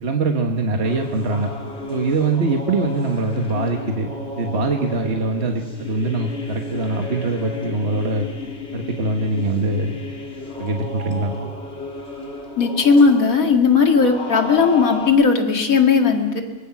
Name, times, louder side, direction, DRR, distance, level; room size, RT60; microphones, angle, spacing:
voice 1, 0.0-1.5 1.9-4.1 4.3-8.3 8.7-9.9 10.6-11.3, right 3 dB, 50° right, 3 dB, 1.7 m, -22 dB
sound 1, 0.8-15.1, left 2 dB, 50° left, 2.8 m, -33 dB
voice 2, 12.6-16.4, left 5 dB, 90° left, 3 dB, 2.6 m, -16 dB
24.0 x 20.5 x 6.0 m, 1.3 s
omnidirectional pair, 1.4 m